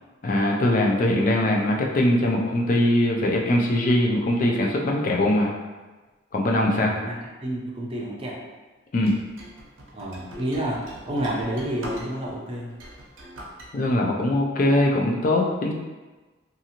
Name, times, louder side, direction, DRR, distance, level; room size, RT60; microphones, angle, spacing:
voice 1, 0.2-5.6 6.3-6.9 8.9-9.1 13.7-15.7, left 1 dB, 40° left, 0 dB, 0.4 m, -21 dB
voice 2, 6.7-8.5 9.9-12.7, right 1 dB, 30° right, -3 dB, 0.5 m, -30 dB
sound 1, 9.0-12.4 12.7-13.7, equal, 85° right, 0.6 m, -40 dB
2.7 x 2.4 x 2.8 m, 1.2 s
head